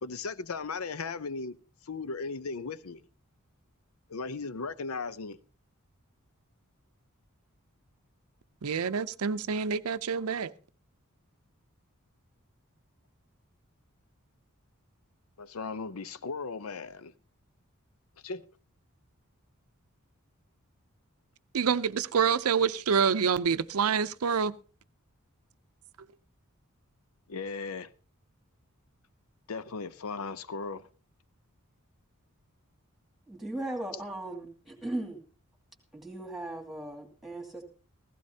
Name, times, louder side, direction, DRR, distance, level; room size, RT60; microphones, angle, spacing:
voice 1, 0.0-1.6 1.8-3.1 4.1-5.4 15.4-17.1 18.2-18.5 27.3-27.9 29.5-30.9, left 4 dB, 70° left, 0.7 m, -37 dB
voice 2, 8.6-10.5 21.5-24.6, right 6 dB, 80° right, 0.6 m, -27 dB
voice 3, 33.3-35.2 35.9-37.6, right 1 dB, ahead, 2.5 m, -37 dB
16.0 x 16.0 x 2.8 m
head